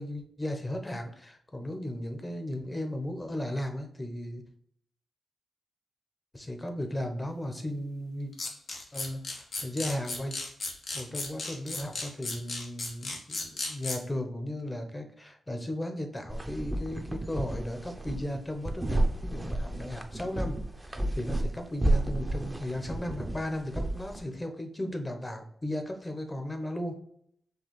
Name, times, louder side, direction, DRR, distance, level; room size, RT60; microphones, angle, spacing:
voice 1, 0.0-4.4 6.3-8.3 8.9-10.3 10.9-27.0, left 1 dB, 20° left, 5 dB, 0.9 m, -36 dB
sound 1, 8.3-14.0, left 3 dB, 70° left, 1.1 m, -35 dB
sound 2, 16.3-24.2, right 1 dB, 20° right, 0.7 m, -31 dB
4.7 x 2.9 x 3.2 m, 0.67 s
cardioid pair, 55°, 0 cm